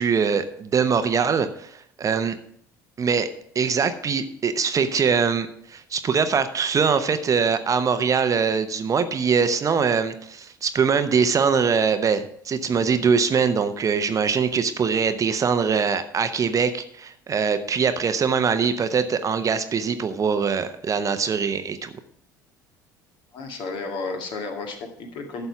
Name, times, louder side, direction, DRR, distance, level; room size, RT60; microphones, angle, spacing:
voice 1, 0.0-2.4 3.0-3.3 3.5-21.9, right 6 dB, 35° right, 10 dB, 0.9 m, -22 dB
voice 2, 23.3-25.5, left 3 dB, 55° left, 3 dB, 2.1 m, -32 dB
11.5 x 6.7 x 5.8 m, 0.66 s
figure-of-eight pair, 60°, 10 cm